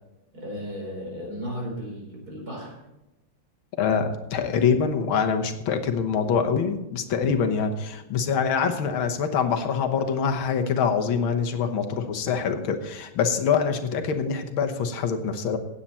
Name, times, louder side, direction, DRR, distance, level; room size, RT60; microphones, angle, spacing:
voice 1, 0.3-2.8, equal, 50° right, -1 dB, 5.0 m, -35 dB
voice 2, 3.8-15.6, left 6 dB, 90° left, 6 dB, 2.0 m, -25 dB
16.5 x 8.7 x 4.3 m, 0.97 s
omnidirectional pair, 2.2 m